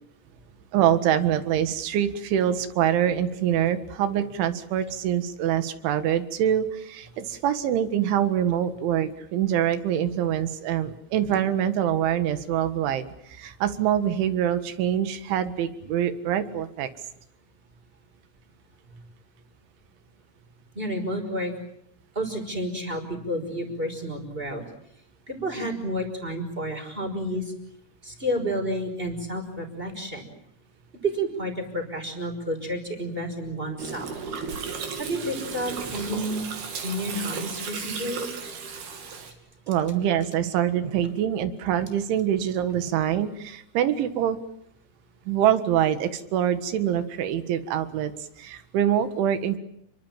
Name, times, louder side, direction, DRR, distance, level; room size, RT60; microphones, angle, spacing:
voice 1, 0.7-16.9 39.7-44.4 45.3-48.1 48.4-49.6, right 10 dB, 70° right, 10 dB, 3.9 m, -25 dB
voice 2, 20.8-21.5 22.2-24.6 25.3-27.5 28.0-30.2 31.0-34.1 35.0-36.4 36.8-38.2, equal, 10° right, 5 dB, 5.3 m, -30 dB
Gurgling, 33.8-39.3, right 5 dB, 55° right, 4.7 m, -34 dB
30.0 x 23.5 x 7.5 m, 0.75 s
omnidirectional pair, 5.8 m